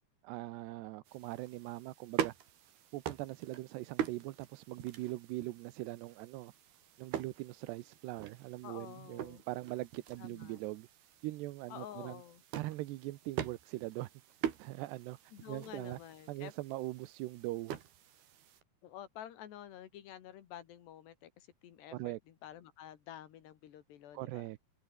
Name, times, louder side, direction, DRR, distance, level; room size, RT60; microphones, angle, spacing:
voice 1, 0.2-2.3 2.9-6.5 7.0-10.9 11.2-12.2 12.5-14.1 14.6-15.2 15.5-16.0 16.3-17.8 21.9-22.2 24.1-24.6, right 18 dB, 90° right, 3.0 m, -41 dB
sound 1, 1.1-18.6, right 10 dB, 70° right, 4.1 m, -44 dB
voice 2, 8.6-9.4 10.2-10.6 11.7-12.4 15.3-16.5 18.8-24.5, left 11 dB, 80° left, 4.3 m, -50 dB
omnidirectional pair, 4.8 m